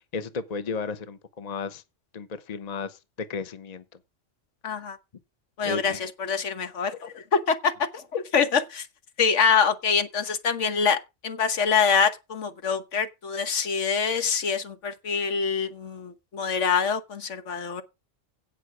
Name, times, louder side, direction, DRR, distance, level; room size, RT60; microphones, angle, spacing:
voice 1, 0.0-1.8 2.1-4.0 5.6-6.1, left 4 dB, 35° left, 0.9 m, -34 dB
voice 2, 4.6-5.0 5.6-8.9 9.2-17.8, left 6 dB, 75° left, 1.5 m, -25 dB
16.5 x 5.7 x 4.8 m
omnidirectional pair, 1.2 m